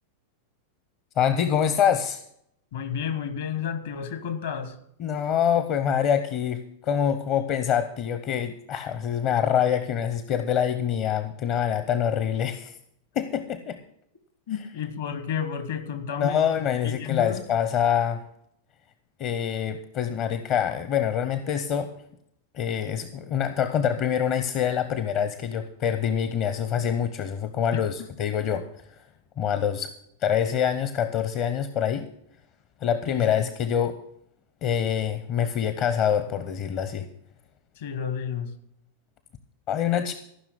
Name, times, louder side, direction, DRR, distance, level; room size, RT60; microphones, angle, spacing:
voice 1, 1.2-2.2 5.0-12.8 13.2-13.8 16.2-18.2 19.2-21.9 22.5-28.7 29.4-29.9 30.2-32.1 32.8-33.9 34.6-37.1 39.7-40.1, left 8 dB, 40° left, 10 dB, 0.7 m, -25 dB
voice 2, 2.7-4.7 14.5-16.5 16.8-17.4 27.7-27.9 33.1-33.5 37.8-38.5, left 8 dB, 60° left, 11 dB, 1.4 m, -31 dB
14.5 x 6.0 x 8.3 m, 0.73 s
figure-of-eight pair, 90°, 0 cm